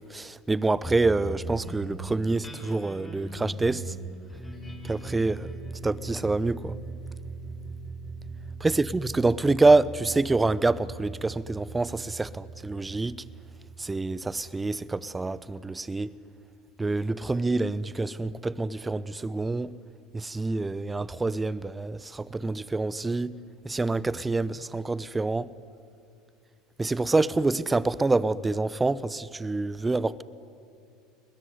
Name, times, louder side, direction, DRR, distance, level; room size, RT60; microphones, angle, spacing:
voice 1, 0.0-3.9 4.8-5.5 5.8-6.8 8.6-13.2 13.8-16.1 16.8-19.7 20.1-23.3 23.6-25.5 26.8-30.2, right 3 dB, 15° right, 0.9 m, -26 dB
sound 1, 0.8-15.5, right 3 dB, 15° left, 6.7 m, -40 dB
30.0 x 20.5 x 9.6 m
hypercardioid pair, 75°, 0 cm